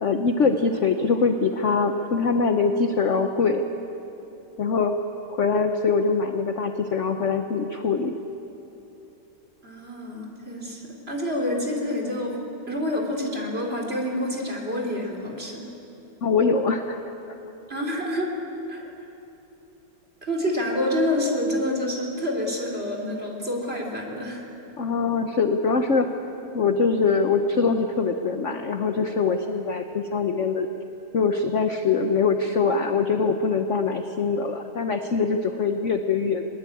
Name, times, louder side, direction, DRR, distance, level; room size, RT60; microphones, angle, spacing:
voice 1, 0.0-3.6 4.6-4.9 5.3-8.2 16.2-17.1 24.8-26.1 26.5-30.7 31.1-36.5, left 4 dB, 50° left, 6 dB, 1.0 m, -23 dB
voice 2, 9.6-10.8 11.1-12.4 12.7-15.7 17.7-18.3 18.7-18.8 20.2-24.4, left 1 dB, 30° right, -1 dB, 3.4 m, -27 dB
21.0 x 21.0 x 8.5 m, 2.9 s
omnidirectional pair, 2.2 m